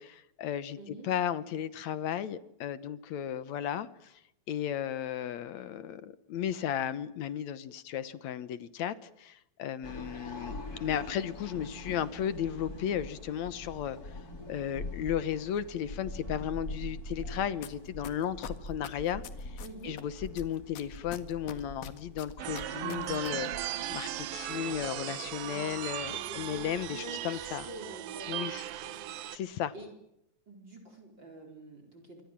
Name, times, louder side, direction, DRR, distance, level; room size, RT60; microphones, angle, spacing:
voice 1, 0.0-4.2 4.5-14.2 14.5-27.7 28.3-28.6 29.3-29.7, left 9 dB, 65° left, 15 dB, 2.0 m, -35 dB
voice 2, 0.8-1.1 19.6-19.9 25.4-25.8 26.1-26.6 26.9-29.1 29.7-29.9 30.5-32.2, right 1 dB, 30° right, 5 dB, 4.9 m, -47 dB
sound 1, 9.8-27.8, left 1 dB, 25° left, 3.7 m, -44 dB
sound 2, 17.6-17.7 18.0-20.0 20.4-23.3 23.6-23.7, left 10 dB, 80° left, 3.6 m, -43 dB
sound 3, 22.4-29.4, right 13 dB, 75° right, 2.8 m, -37 dB
27.5 x 24.0 x 7.5 m, 0.81 s
omnidirectional pair, 4.2 m